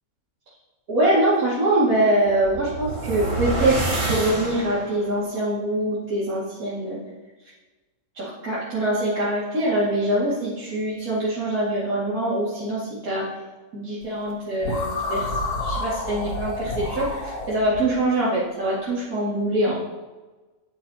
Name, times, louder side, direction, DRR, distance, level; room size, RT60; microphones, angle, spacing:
voice 1, 0.9-7.0 8.1-13.2 13.7-15.3 15.6-19.8, right 1 dB, 65° right, -10 dB, 2.8 m, -24 dB
sound 1, 2.3-5.1, right 2 dB, 35° right, 1.7 m, -27 dB
sound 2, 14.6-17.8, left 2 dB, 90° left, 1.8 m, -29 dB
19.5 x 6.6 x 2.9 m, 1.2 s
omnidirectional pair, 1.6 m